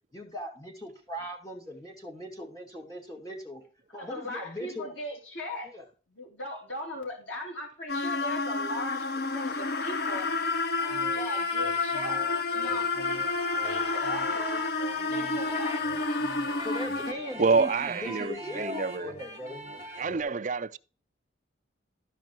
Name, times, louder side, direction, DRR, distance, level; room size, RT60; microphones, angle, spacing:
voice 1, 0.1-3.6 3.9-4.9 5.6-5.9 16.6-19.6 20.1-20.4, left 1 dB, 20° left, 2.4 m, -39 dB
voice 2, 3.9-5.7 6.1-10.3 11.0-13.2 13.5-14.6 15.0-15.8, left 1 dB, 80° left, 3.3 m, -39 dB
sound 1, 7.9-17.1, left 3 dB, 55° left, 0.7 m, -30 dB
sound 2, 10.8-20.2, right 1 dB, 35° left, 2.5 m, -42 dB
voice 3, 17.4-19.1 20.0-20.8, right 4 dB, 40° right, 0.4 m, -27 dB
13.0 x 5.1 x 4.5 m
head